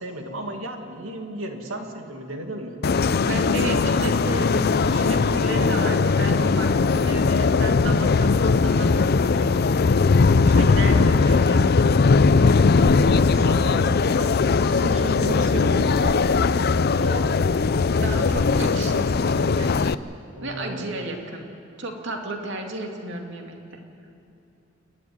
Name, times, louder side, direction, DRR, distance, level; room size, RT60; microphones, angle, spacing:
voice 1, 0.0-2.8 13.0-17.6 20.3-20.9, right 1 dB, 85° right, 4 dB, 2.4 m, -34 dB
sound 1, 2.8-19.9, left 4 dB, 50° left, 0.5 m, -19 dB
voice 2, 3.3-9.7 10.4-11.8 18.0-19.9 20.4-21.4 21.8-23.8, right 2 dB, 65° right, 3 dB, 2.5 m, -33 dB
29.0 x 12.0 x 9.6 m, 2.6 s
head